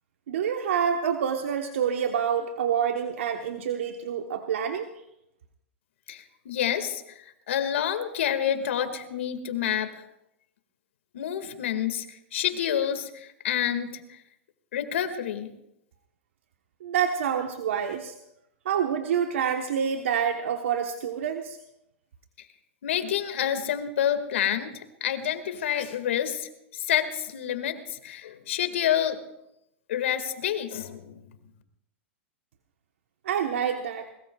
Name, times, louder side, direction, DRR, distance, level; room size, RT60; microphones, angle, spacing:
voice 1, 0.3-4.9 16.8-18.1 18.6-21.6 33.2-34.1, right 8 dB, 75° right, 5 dB, 1.2 m, -27 dB
voice 2, 6.1-10.0 11.1-14.2 14.7-15.5 22.4-22.5 22.8-29.2 29.9-31.2, left 10 dB, 75° left, 8 dB, 2.0 m, -28 dB
23.0 x 20.5 x 2.4 m, 0.83 s
hypercardioid pair, 115°, 7 cm